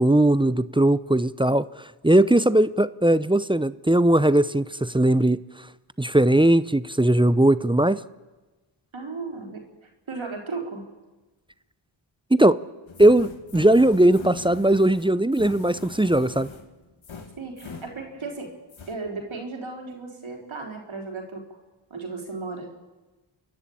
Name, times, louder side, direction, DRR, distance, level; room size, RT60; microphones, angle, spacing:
voice 1, 0.0-5.4 6.0-8.0 12.3-12.6 13.0-16.5, right 1 dB, 10° right, 15 dB, 0.6 m, -19 dB
voice 2, 8.9-10.9 17.4-18.5 18.9-21.6 21.9-22.7, right 3 dB, 75° right, 1 dB, 4.0 m, -35 dB
sound 1, 12.9-18.4 18.7-19.0, left 4 dB, 75° left, 2.1 m, -42 dB
28.5 x 11.0 x 8.7 m, 1.2 s
cardioid pair, 45°, 47 cm